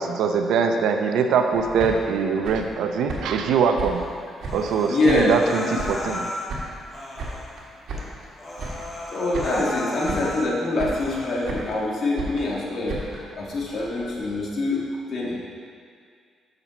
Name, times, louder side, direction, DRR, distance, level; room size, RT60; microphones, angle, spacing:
voice 1, 0.0-4.1 4.5-6.3, right 5 dB, 80° right, 5 dB, 0.6 m, -22 dB
sound 1, 1.5-4.8 5.1-6.2 6.5-8.3 8.6-9.1 9.3-9.8 10.0-10.5 10.8-11.8 12.2-14.4, right 2 dB, 65° right, 1.7 m, -35 dB
Human voice, 4.4-6.5 6.9-7.5 8.0-8.1 8.4-10.5 10.9-11.5, left 1 dB, 30° left, 1.2 m, -34 dB
voice 2, 4.9-5.3 5.7-5.8 9.1-14.8 15.1-15.3, left 2 dB, 55° left, -4 dB, 1.8 m, -25 dB
7.2 x 6.6 x 4.1 m, 2.2 s
cardioid pair, 90°, 0 cm